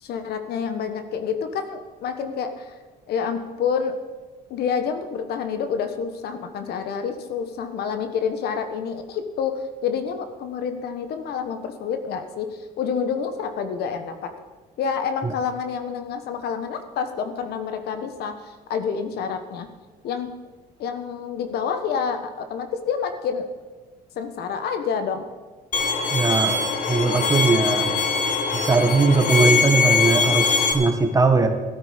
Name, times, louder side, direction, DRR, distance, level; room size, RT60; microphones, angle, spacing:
voice 1, 0.0-2.7 3.1-3.9 4.5-14.3 14.8-19.7 20.0-20.3 20.8-23.5 24.1-25.2, left 6 dB, 70° left, 8 dB, 1.4 m, -28 dB
Bowed string instrument, 25.7-30.7, left 4 dB, 50° left, 1.8 m, -22 dB
voice 2, 26.1-26.6 26.9-27.9 28.6-31.5, right 3 dB, 20° right, 5 dB, 1.6 m, -20 dB
13.5 x 12.5 x 5.3 m, 1.3 s
cardioid pair, 110°, 17 cm